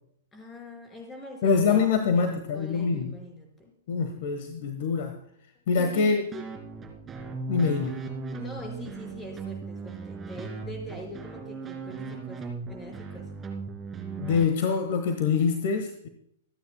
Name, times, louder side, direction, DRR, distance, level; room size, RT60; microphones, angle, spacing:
voice 1, 0.3-3.7 5.6-6.3 8.4-13.4, left 1 dB, 15° left, 2 dB, 5.2 m, -43 dB
voice 2, 1.4-3.1 3.9-5.2 5.7-6.4 7.5-8.0 14.2-16.1, left 5 dB, 50° left, 8 dB, 1.3 m, -25 dB
sound 1, 6.3-14.4, right 4 dB, 15° right, 2.3 m, -37 dB
26.0 x 9.8 x 2.2 m, 0.68 s
figure-of-eight pair, 105°, 0 cm